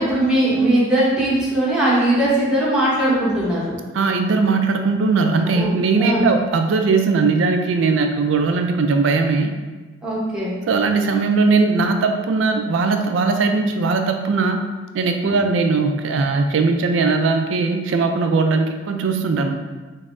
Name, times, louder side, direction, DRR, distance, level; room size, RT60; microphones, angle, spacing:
voice 1, 0.0-3.9 5.5-5.7 6.0-6.3 10.0-10.6 15.2-15.4, right 1 dB, 5° right, -8 dB, 0.9 m, -19 dB
voice 2, 3.9-9.6 10.7-14.6 14.9-19.6, right 4 dB, 75° right, 5 dB, 0.4 m, -19 dB
5.4 x 2.0 x 2.5 m, 1.3 s
head